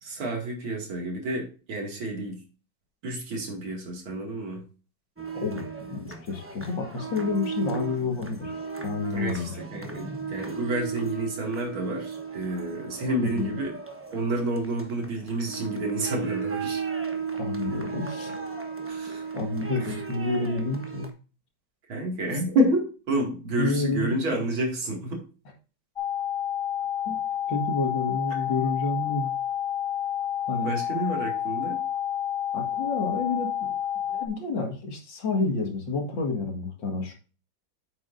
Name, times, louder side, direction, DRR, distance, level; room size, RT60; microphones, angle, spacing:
voice 1, 0.0-2.4 3.0-4.7 9.1-13.8 14.1-16.8 18.9-19.2 19.8-20.0 21.9-25.2 30.6-31.8, right 1 dB, 75° right, 1 dB, 3.0 m, -29 dB
sound 1, 5.2-21.1, right 5 dB, 20° right, 0.4 m, -35 dB
voice 2, 5.3-5.6 5.9-8.5 8.8-9.5 13.2-13.5 17.4-18.4 19.3-21.1 23.6-24.2 27.1-27.2 27.5-29.3 30.5-30.8 32.5-33.7 34.0-37.1, left 3 dB, 65° left, 2 dB, 2.4 m, -29 dB
sound 2, 26.0-34.3, left 10 dB, 15° left, 2.6 m, -29 dB
9.4 x 7.6 x 2.6 m, 0.35 s
omnidirectional pair, 2.3 m